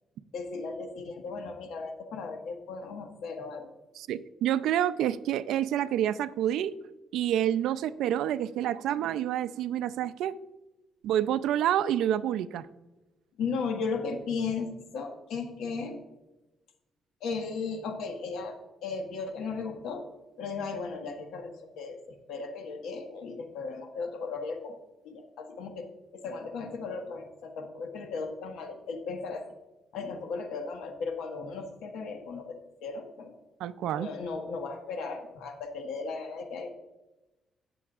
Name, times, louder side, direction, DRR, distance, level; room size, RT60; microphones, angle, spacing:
voice 1, 0.3-3.8 13.4-16.0 17.2-20.1 20.4-22.0 22.3-24.8 25.0-29.5 29.9-33.4 34.0-36.7, left 4 dB, 85° left, 4 dB, 1.6 m, -36 dB
voice 2, 4.0-6.7 7.1-10.4 11.0-12.7 33.6-34.1, right 11 dB, 85° right, 14 dB, 0.4 m, -28 dB
17.5 x 6.9 x 2.5 m, 1.0 s
cardioid pair, 90°, 0 cm